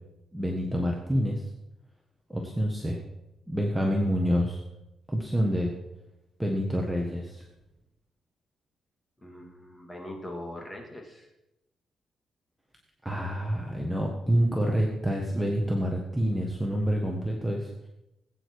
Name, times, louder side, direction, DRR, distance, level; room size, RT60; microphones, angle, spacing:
voice 1, 0.3-1.4 2.3-3.0 3.5-4.6 5.1-5.7 6.4-7.4 13.0-17.7, equal, 5° right, -1 dB, 1.5 m, -27 dB
voice 2, 9.2-11.3, left 1 dB, 15° left, 1 dB, 2.6 m, -41 dB
19.5 x 9.0 x 4.8 m, 0.89 s
cardioid pair, 155°, 0 cm